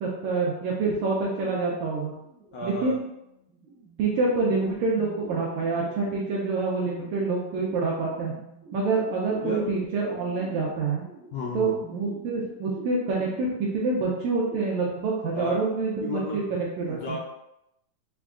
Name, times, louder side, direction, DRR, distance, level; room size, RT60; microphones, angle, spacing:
voice 1, 0.0-2.1 2.6-3.0 4.0-8.3 8.7-11.0 11.5-17.2, right 3 dB, 80° right, -3 dB, 1.7 m, -27 dB
sound 1, 0.9-14.6, right 4 dB, 50° right, 1.7 m, -47 dB
voice 2, 2.5-3.0 9.4-9.7 11.3-11.8 15.3-15.6 16.0-16.6 16.9-17.2, left 2 dB, 80° left, -2 dB, 1.8 m, -33 dB
5.9 x 2.3 x 2.4 m, 0.84 s
omnidirectional pair, 3.8 m